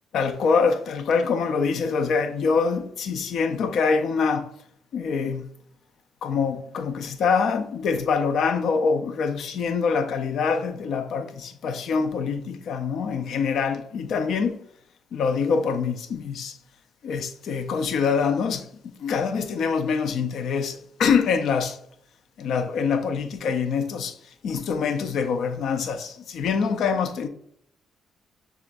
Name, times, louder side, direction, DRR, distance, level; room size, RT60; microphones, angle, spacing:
voice 1, 0.1-4.5 4.9-5.5 6.2-14.6 15.1-16.6 17.0-21.8 22.4-24.2 24.4-27.3, left 5 dB, 70° left, 0.6 m, -25 dB
6.9 x 2.5 x 2.6 m
cardioid pair, 90°, 0 cm